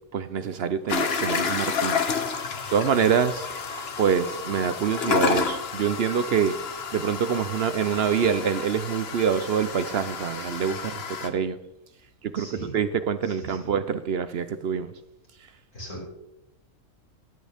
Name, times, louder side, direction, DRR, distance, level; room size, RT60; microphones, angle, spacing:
voice 1, 0.1-2.0 2.3-3.5 4.0-6.5 6.9-11.6 12.2-14.9, right 7 dB, 60° right, 0.8 m, -25 dB
sound 1, 0.9-11.3, left 6 dB, 55° left, 1.2 m, -30 dB
voice 2, 12.3-12.7 13.2-13.7 15.7-16.1, right 1 dB, 85° left, 5.8 m, -39 dB
21.0 x 8.9 x 3.5 m
omnidirectional pair, 1.3 m